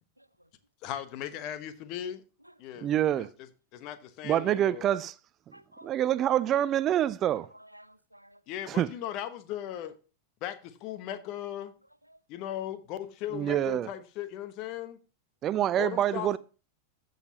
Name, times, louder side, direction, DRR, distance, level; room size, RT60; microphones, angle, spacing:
voice 1, 0.2-0.5 2.4-2.9 5.5-6.0 7.2-8.4 12.0-12.2, right 1 dB, 90° right, 0.5 m, -55 dB
voice 2, 0.8-2.2 2.6-2.9 3.2-3.3 3.7-4.8 8.5-9.9 10.4-11.7 12.3-15.0 15.8-16.3, left 11 dB, 40° left, 1.1 m, -37 dB
voice 3, 2.8-3.3 4.2-5.1 5.5-5.6 5.8-7.5 8.7-8.9 13.3-13.9 15.4-16.4, right 11 dB, 30° right, 0.4 m, -26 dB
15.0 x 6.6 x 2.8 m
figure-of-eight pair, 90°, 0 cm